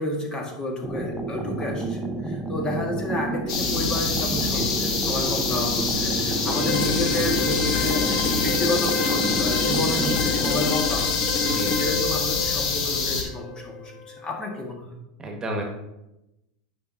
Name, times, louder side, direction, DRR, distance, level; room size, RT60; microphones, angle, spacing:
voice 1, 0.0-11.2 11.8-15.0, left 1 dB, 25° left, 1 dB, 1.6 m, -31 dB
sound 1, 0.8-10.7, right 2 dB, 5° right, 0.9 m, -30 dB
sound 2, 3.5-13.2, left 4 dB, 70° left, 1.9 m, -26 dB
voice 2, 4.4-4.8 11.4-11.9 15.2-15.6, right 1 dB, 20° right, 1 dB, 1.6 m, -32 dB
sound 3, 6.5-14.3, left 5 dB, 50° left, 0.9 m, -29 dB
9.2 x 5.6 x 2.8 m, 0.93 s
hypercardioid pair, 110°, 3 cm